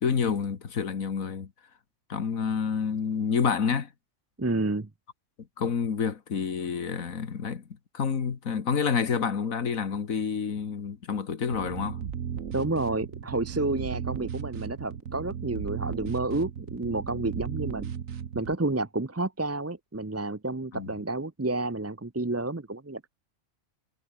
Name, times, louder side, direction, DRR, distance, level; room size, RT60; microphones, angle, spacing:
voice 1, 0.0-1.5 2.1-3.9 5.6-7.6 7.9-12.0 20.7-20.9, left 6 dB, 85° left, 2.0 m, -28 dB
voice 2, 4.4-4.9 12.5-17.9 18.3-23.1, right 2 dB, 15° right, 0.5 m, -30 dB
sound 1, 11.5-18.5, right 8 dB, 75° right, 1.6 m, -36 dB
omnidirectional pair, 1.4 m